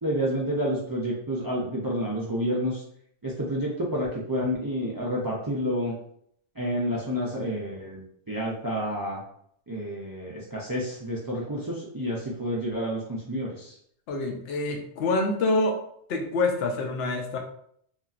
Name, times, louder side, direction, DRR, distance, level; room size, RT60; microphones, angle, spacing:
voice 1, 0.0-2.8 3.2-5.9 6.6-9.2 9.7-13.8, equal, 35° right, -4 dB, 0.3 m, -29 dB
voice 2, 14.1-15.8 16.1-17.4, left 2 dB, 75° left, 3 dB, 0.8 m, -26 dB
3.0 x 2.6 x 2.4 m, 0.67 s
omnidirectional pair, 1.1 m